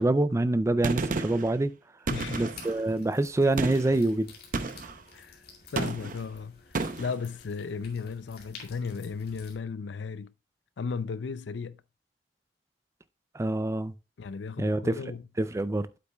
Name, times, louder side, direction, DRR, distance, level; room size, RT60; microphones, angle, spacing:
voice 1, 0.0-1.7 2.4-4.3 13.3-13.9 14.6-15.0 15.4-15.9, right 2 dB, 15° right, 0.4 m, -26 dB
Gunshot gunfire, 0.8-1.5 2.1-2.8 3.6-4.0 4.5-5.0 5.8-6.2 6.7-7.2, right 3 dB, 50° right, 0.7 m, -31 dB
voice 2, 2.1-2.5 5.1-5.4 5.7-10.3 10.8-11.8 14.2-15.2, left 5 dB, 85° left, 0.5 m, -35 dB
sound 1, 2.4-9.5, left 5 dB, 60° left, 2.2 m, -51 dB
8.7 x 8.0 x 2.3 m
head